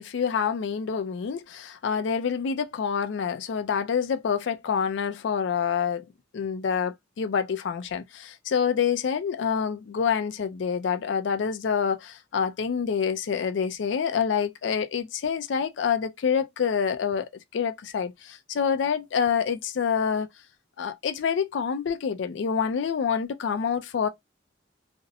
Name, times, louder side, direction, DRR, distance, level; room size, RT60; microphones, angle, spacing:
voice 1, 0.0-6.0 6.3-20.3 20.8-24.1, left 6 dB, 70° left, 0.4 m, -27 dB
2.5 x 2.0 x 2.6 m
head